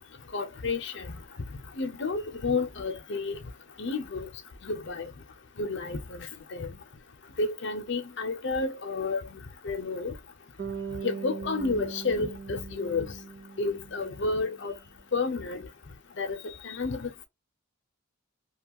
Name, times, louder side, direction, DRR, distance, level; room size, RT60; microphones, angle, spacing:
voice 1, 0.3-1.2 1.8-3.4 3.8-4.3 4.6-5.1 5.6-6.8 7.4-10.1 11.0-13.1 13.6-14.7 15.1-15.7 16.2-16.4 16.6-17.1, left 3 dB, 60° left, 0.7 m, -31 dB
Bass guitar, 10.6-14.7, right 5 dB, 55° right, 0.7 m, -40 dB
2.8 x 2.4 x 2.9 m
head